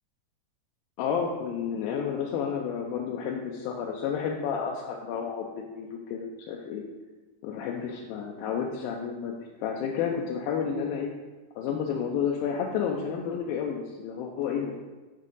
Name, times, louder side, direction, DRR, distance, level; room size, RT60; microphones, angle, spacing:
voice 1, 1.0-6.8 7.4-11.1 11.6-14.8, left 7 dB, 80° left, 0 dB, 2.3 m, -31 dB
7.5 x 3.6 x 5.3 m, 1.2 s
omnidirectional pair, 4.5 m